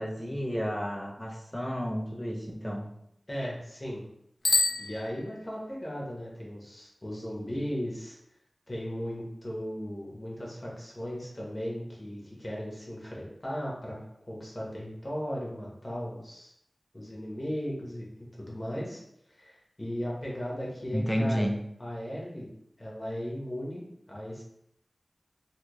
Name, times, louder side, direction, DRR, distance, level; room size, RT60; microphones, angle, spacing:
voice 1, 0.0-2.9 20.9-21.6, equal, 10° left, 2 dB, 0.5 m, -31 dB
voice 2, 3.3-4.0 4.8-8.2 8.7-14.0 14.3-16.5 16.9-19.0 19.3-21.5 21.8-22.5 22.8-24.4, equal, 30° left, -4 dB, 1.2 m, -36 dB
Bicycle bell, 4.4-5.7, left 2 dB, 80° left, 0.7 m, -28 dB
3.4 x 2.8 x 3.1 m, 0.76 s
wide cardioid pair, 75°, 0 cm